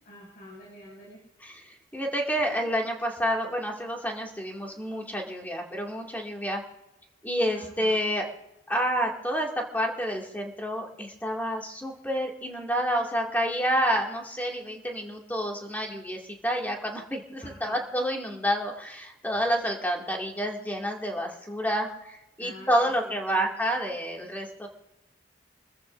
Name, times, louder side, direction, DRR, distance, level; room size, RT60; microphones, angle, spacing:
voice 1, 0.1-1.2 7.5-8.0 17.4-17.8 22.4-23.5, equal, 50° left, -5 dB, 7.6 m, -47 dB
voice 2, 1.4-6.6 7.2-8.3 8.7-24.7, equal, 10° left, 0 dB, 2.3 m, -29 dB
27.0 x 14.5 x 2.6 m, 0.91 s
head